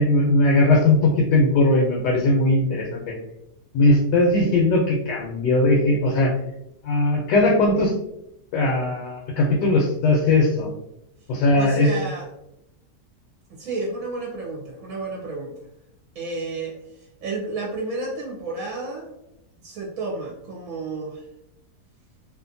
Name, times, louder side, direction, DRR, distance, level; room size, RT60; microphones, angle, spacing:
voice 1, 0.0-3.1 3.7-6.3 6.8-7.9 8.5-10.7 11.3-11.9, left 2 dB, 80° left, -1 dB, 1.2 m, -19 dB
voice 2, 11.6-12.2 13.5-15.5 16.1-19.1 19.6-21.2, right 3 dB, 65° right, -3 dB, 1.0 m, -31 dB
2.8 x 2.4 x 2.5 m, 0.84 s
omnidirectional pair, 1.8 m